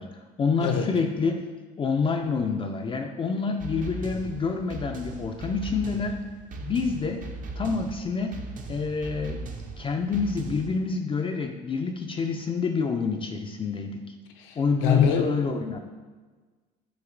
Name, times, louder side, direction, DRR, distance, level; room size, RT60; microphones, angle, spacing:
voice 1, 0.0-1.4 1.8-6.2 6.6-7.2 7.6-8.4 8.7-9.5 9.8-14.0 14.6-15.8, left 4 dB, 25° left, 4 dB, 0.3 m, -27 dB
voice 2, 0.6-0.9 14.4-15.5, left 7 dB, 70° left, 5 dB, 0.6 m, -25 dB
sound 1, 3.6-10.8, right 3 dB, 40° right, 0.6 m, -39 dB
6.0 x 2.7 x 2.5 m, 1.4 s
hypercardioid pair, 75°, 21 cm